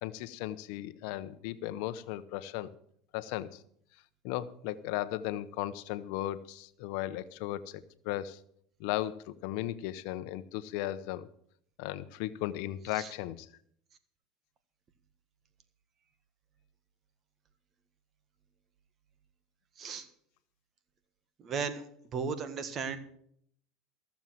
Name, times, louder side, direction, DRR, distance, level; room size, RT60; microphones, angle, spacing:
voice 1, 0.0-2.7 3.1-3.6 4.2-8.4 8.8-11.3 11.8-13.5, left 14 dB, 70° left, 0.8 m, -36 dB
voice 2, 21.4-21.8 22.1-23.0, right 5 dB, 40° right, 1.6 m, -35 dB
14.5 x 7.2 x 7.5 m
supercardioid pair, 110°, 0 cm